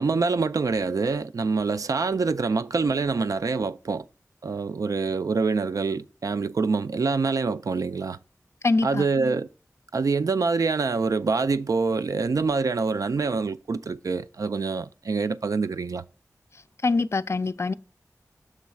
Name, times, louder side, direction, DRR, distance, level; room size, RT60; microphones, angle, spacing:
voice 1, 0.0-4.0 4.4-8.2 8.8-9.5 9.9-16.0, right 4 dB, 70° right, 0.3 m, -25 dB
voice 2, 8.6-9.1 16.8-17.7, left 3 dB, 45° left, 0.3 m, -24 dB
6.3 x 3.1 x 5.7 m
wide cardioid pair, 45°, 6 cm